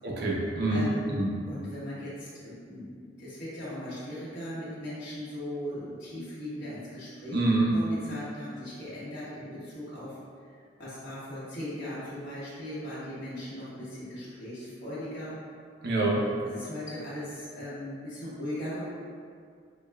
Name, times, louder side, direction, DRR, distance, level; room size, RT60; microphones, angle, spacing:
voice 1, 0.0-0.9 1.1-1.3 7.3-7.7 15.8-16.2, right 2 dB, 60° right, -3 dB, 0.7 m, -26 dB
voice 2, 0.7-7.4 7.7-10.2 10.5-15.3 16.4-18.9, left 1 dB, 65° left, -11 dB, 1.4 m, -38 dB
5.0 x 2.3 x 2.3 m, 2.1 s
head